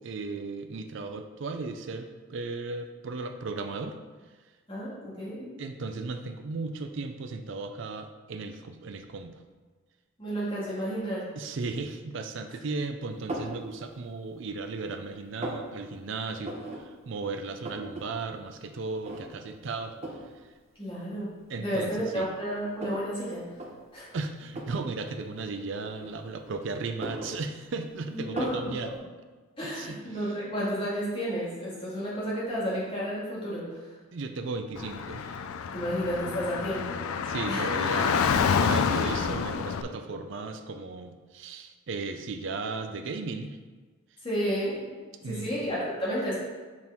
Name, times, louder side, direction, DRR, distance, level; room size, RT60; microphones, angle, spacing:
voice 1, 0.0-4.0 5.6-9.3 11.4-16.6 16.8-20.0 21.5-22.3 24.1-28.9 29.7-30.3 34.1-35.4 37.2-38.3 38.6-43.6 45.2-45.5, right 3 dB, 60° right, 7 dB, 0.4 m, -36 dB
voice 2, 4.7-5.5 10.2-11.3 20.8-21.3 21.6-23.4 23.9-24.1 28.1-28.7 29.6-33.9 35.7-37.0 37.5-37.7 44.2-44.9 45.2-46.4, equal, 25° left, -7 dB, 1.9 m, -31 dB
sound 1, 13.3-13.6 14.1-14.8 15.1-15.7 16.4-16.8 17.1-17.2 17.4-18.1 18.4-18.5 19.0-19.5 20.0-20.3 21.1-21.2 21.8-23.1 23.5-23.7 24.5-24.9 25.8-26.5 26.8-27.9 28.4-28.7, right 1 dB, 30° right, 0.7 m, -37 dB
Car / Traffic noise roadway noise, 34.8-39.8, left 6 dB, 80° left, 0.3 m, -28 dB
6.0 x 4.4 x 3.6 m, 1.4 s
head